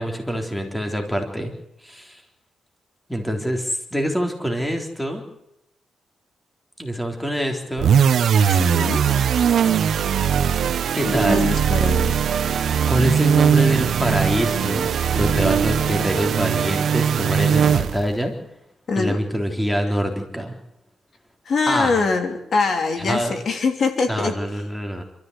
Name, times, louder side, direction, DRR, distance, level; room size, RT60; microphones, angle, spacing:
voice 1, 0.0-1.5 1.8-2.2 3.1-5.2 6.8-7.9 10.9-11.5 12.9-14.9 15.1-18.3 19.0-20.5 21.7-22.0 23.1-23.4 24.1-25.0, equal, 5° left, 3 dB, 3.6 m, -25 dB
sound 1, 7.8-18.2, right 7 dB, 65° right, 1.1 m, -20 dB
voice 2, 8.6-9.0 11.2-12.1 18.9-19.2 21.4-24.3, left 4 dB, 50° left, 5 dB, 3.3 m, -23 dB
27.0 x 14.0 x 8.2 m, 0.83 s
cardioid pair, 130°, 0 cm